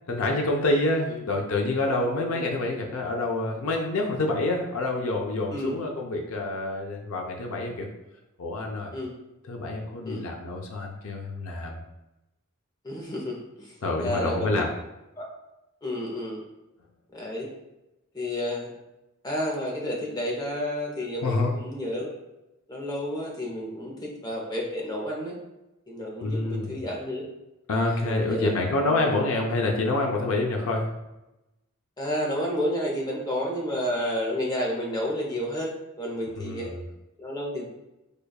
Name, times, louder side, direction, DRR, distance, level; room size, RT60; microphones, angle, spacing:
voice 1, 0.1-7.9 8.4-8.9 9.5-11.8 13.8-14.7 21.2-21.5 26.2-26.8 27.7-30.9 36.4-36.8, left 2 dB, 85° left, 1 dB, 0.5 m, -27 dB
voice 2, 12.8-14.6 15.2-15.3 15.8-16.4 17.1-17.5 18.1-18.7 19.2-22.2 22.7-25.4 25.9-27.2 27.8-29.2 32.0-35.7 36.0-36.7 37.2-37.6, equal, 20° left, -2 dB, 0.6 m, -31 dB
4.9 x 2.3 x 2.3 m, 0.96 s
head